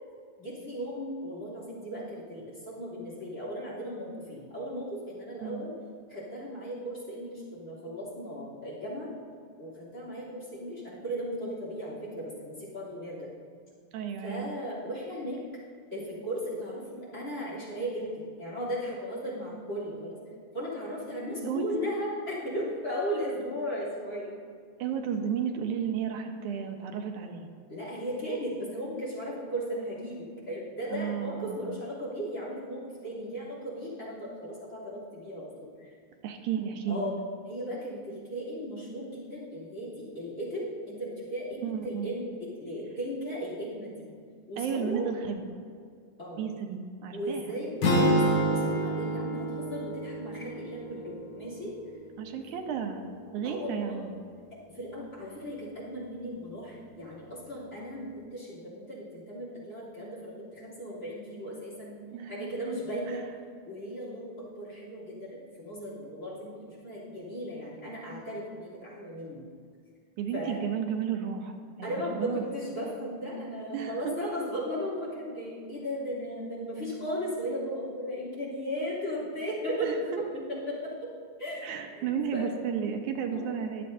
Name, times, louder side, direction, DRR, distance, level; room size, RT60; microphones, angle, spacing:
voice 1, 0.4-5.7 6.1-9.1 9.6-13.3 14.2-15.4 15.9-20.2 20.5-24.3 27.7-35.9 36.9-37.2 37.5-44.0 44.5-45.1 46.2-46.4 47.1-51.7 53.4-54.1 54.7-62.0 62.3-63.2 63.7-69.5 70.3-70.7 71.8-80.2 80.5-81.1 81.4-81.7 81.9-82.5 83.3-83.7, equal, 25° left, -6 dB, 3.2 m, -36 dB
voice 2, 13.9-14.5 21.4-21.7 24.8-27.5 30.9-31.7 36.2-37.1 41.6-42.2 44.6-45.4 46.4-47.5 52.2-53.0 53.3-54.1 62.1-62.5 63.1-63.2 70.2-72.4 73.7-74.2 79.8-80.2 81.6-83.8, right 7 dB, 85° right, 5 dB, 2.3 m, -33 dB
sound 1, 47.8-52.0, right 1 dB, 55° left, 1.4 m, -28 dB
22.0 x 7.6 x 2.7 m, 2.2 s
omnidirectional pair, 3.4 m